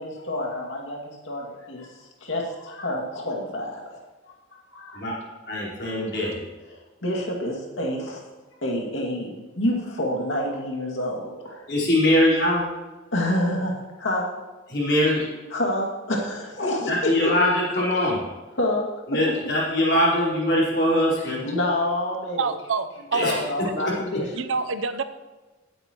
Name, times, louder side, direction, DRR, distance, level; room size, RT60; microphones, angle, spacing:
voice 1, 0.0-1.9 2.2-3.8 4.7-5.0 7.0-8.2 8.6-11.6 13.1-14.3 15.5-17.3 18.6-18.9 21.4-22.4 23.2-24.3, left 1 dB, 90° left, -1 dB, 2.4 m, -27 dB
voice 2, 5.5-6.4 11.7-12.7 14.7-15.2 16.9-18.2 19.1-21.4 23.1-23.3, left 1 dB, 55° left, -6 dB, 4.3 m, -22 dB
voice 3, 22.4-23.3 24.3-25.0, right 4 dB, 90° right, 11 dB, 0.7 m, -26 dB
17.0 x 8.8 x 3.1 m, 1.2 s
head